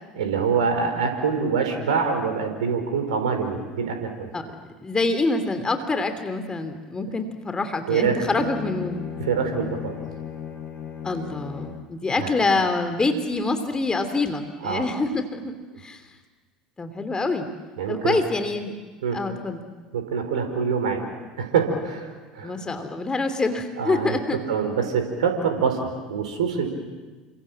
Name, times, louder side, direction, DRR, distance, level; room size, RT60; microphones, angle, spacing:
voice 1, 0.1-4.3 7.9-8.5 9.2-9.9 12.2-12.3 14.6-14.8 17.8-18.2 19.0-19.2 19.9-21.0 21.4-22.5 23.8-26.7, right 6 dB, 75° right, 6 dB, 4.8 m, -25 dB
voice 2, 4.8-9.0 11.0-16.0 16.8-17.5 17.9-18.7 19.1-19.6 22.4-24.4, left 3 dB, 20° left, 8 dB, 2.9 m, -26 dB
Bowed string instrument, 8.1-12.0, left 8 dB, 35° left, 5.0 m, -35 dB
29.5 x 25.5 x 7.6 m, 1.3 s
figure-of-eight pair, 70°, 4 cm